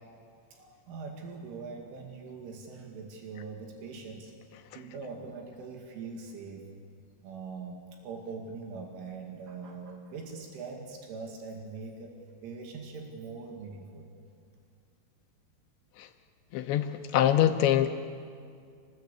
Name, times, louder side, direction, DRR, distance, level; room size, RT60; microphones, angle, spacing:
voice 1, 0.5-4.4 4.8-6.7 7.2-12.2 12.4-14.1, right 4 dB, 80° right, 1 dB, 4.6 m, -42 dB
voice 2, 16.5-17.9, left 11 dB, 80° left, 7 dB, 2.9 m, -24 dB
27.5 x 19.5 x 8.4 m, 2.3 s
omnidirectional pair, 5.5 m